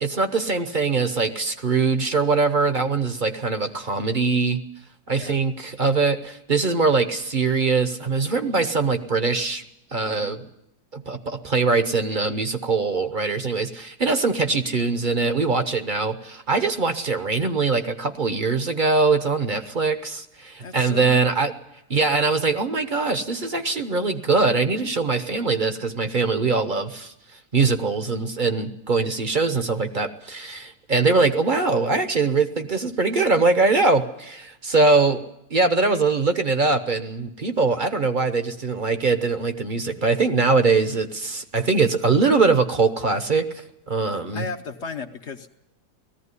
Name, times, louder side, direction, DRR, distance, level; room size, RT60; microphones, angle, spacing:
voice 1, 0.0-4.6 5.1-9.6 9.9-10.4 10.9-21.5 21.9-27.1 27.5-44.4, right 4 dB, 35° right, 9 dB, 0.9 m, -22 dB
voice 2, 5.1-5.4 10.0-10.3 20.6-21.4 44.3-45.5, left 4 dB, 50° left, 6 dB, 1.1 m, -35 dB
18.0 x 14.5 x 9.7 m, 0.83 s
omnidirectional pair, 1.7 m